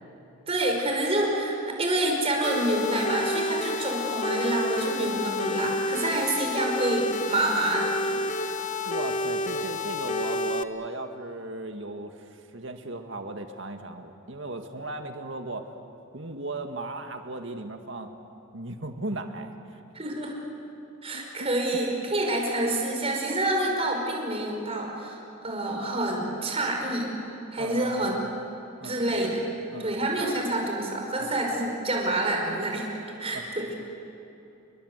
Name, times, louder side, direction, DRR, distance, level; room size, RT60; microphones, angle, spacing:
voice 1, 0.5-8.2 19.9-20.3 21.0-27.1 27.5-28.1 28.8-29.4 29.8-32.9 33.2-33.7, right 1 dB, 25° right, 1 dB, 5.3 m, -27 dB
sound 1, 2.4-10.6, left 2 dB, 35° left, 1.0 m, -30 dB
voice 2, 8.9-12.3 12.5-15.7 16.1-18.1 18.5-19.8 21.1-21.5 27.6-28.1 28.8-29.1 29.7-30.0 31.2-31.3 33.3-33.4, right 2 dB, 60° right, 5 dB, 1.9 m, -36 dB
29.5 x 22.5 x 8.2 m, 2.9 s
head